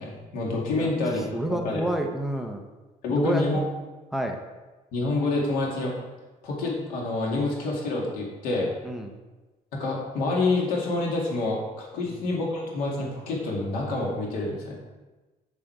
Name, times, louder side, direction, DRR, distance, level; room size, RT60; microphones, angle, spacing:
voice 1, 0.0-1.8 3.0-3.6 4.9-5.9 6.4-8.7 9.7-14.8, left 2 dB, 85° left, -2 dB, 2.3 m, -27 dB
voice 2, 1.3-2.6 3.1-3.5 4.1-4.4 8.8-9.1, right 1 dB, ahead, 4 dB, 0.6 m, -28 dB
7.5 x 6.6 x 4.6 m, 1.2 s
cardioid pair, 160°, 15 cm